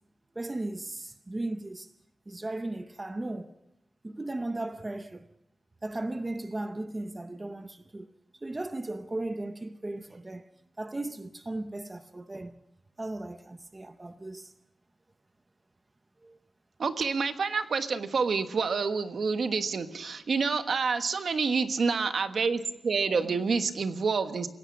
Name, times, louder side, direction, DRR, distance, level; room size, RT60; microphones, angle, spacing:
voice 1, 0.4-1.9 2.3-3.5 4.0-5.3 5.8-8.1 8.4-10.5 10.8-12.5 13.0-14.5 16.2-16.4, right 2 dB, 20° right, 0.7 m, -36 dB
voice 2, 16.8-24.5, right 5 dB, 55° right, 1.3 m, -28 dB
28.5 x 16.5 x 6.1 m
wide cardioid pair, 155°, 0 cm